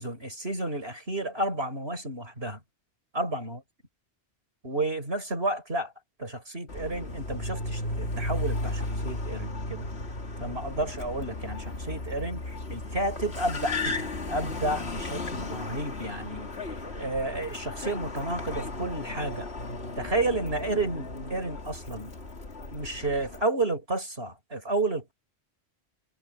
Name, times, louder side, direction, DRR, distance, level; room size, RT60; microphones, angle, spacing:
voice 1, 0.0-2.6 3.1-3.6 4.6-5.9 6.2-9.9 10.4-19.5 20.0-22.1 22.7-25.1, right 2 dB, 65° right, 5.8 m, -31 dB
Car, 6.7-23.4, left 2 dB, 75° left, 2.7 m, -35 dB
omnidirectional pair, 1.1 m